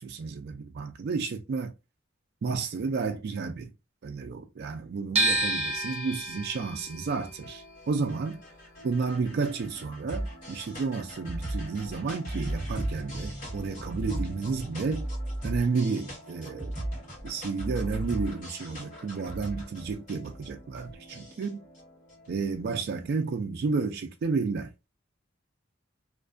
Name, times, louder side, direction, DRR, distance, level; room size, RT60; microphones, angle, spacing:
voice 1, 0.0-1.7 2.4-3.7 4.0-8.4 8.8-15.1 15.4-16.7 17.2-21.6 22.3-24.7, right 4 dB, 55° right, 0.3 m, -31 dB
sound 1, 5.2-11.2 11.5-12.8, right 2 dB, 35° right, 0.7 m, -32 dB
sound 2, 7.4-23.0, right 1 dB, 40° left, 1.4 m, -38 dB
2.5 x 2.2 x 2.4 m
head